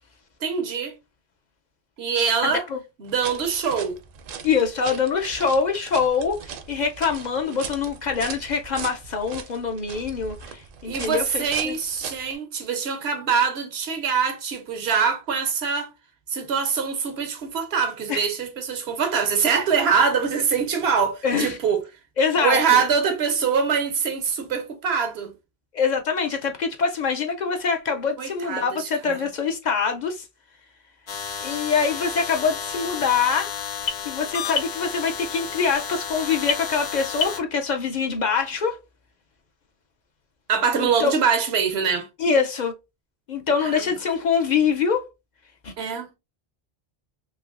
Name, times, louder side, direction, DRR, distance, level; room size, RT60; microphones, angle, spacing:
voice 1, 0.4-1.0 2.0-2.7 3.0-4.0 10.8-15.9 16.3-21.9 22.4-25.3 28.2-29.3 40.5-42.1 43.6-43.9 45.8-46.1, right 6 dB, 90° right, 1.0 m, -24 dB
voice 2, 2.4-2.8 4.4-11.8 18.1-18.3 21.2-21.6 22.2-22.8 25.7-30.2 31.4-33.5 34.1-38.8 40.8-41.1 42.2-42.7 43.3-45.1 45.6-45.7, left 5 dB, 55° left, 0.6 m, -24 dB
sound 1, 3.1-12.4, right 6 dB, 65° right, 0.7 m, -39 dB
sound 2, 31.1-37.4, left 6 dB, 85° left, 0.9 m, -31 dB
3.2 x 2.8 x 2.4 m
omnidirectional pair, 1.0 m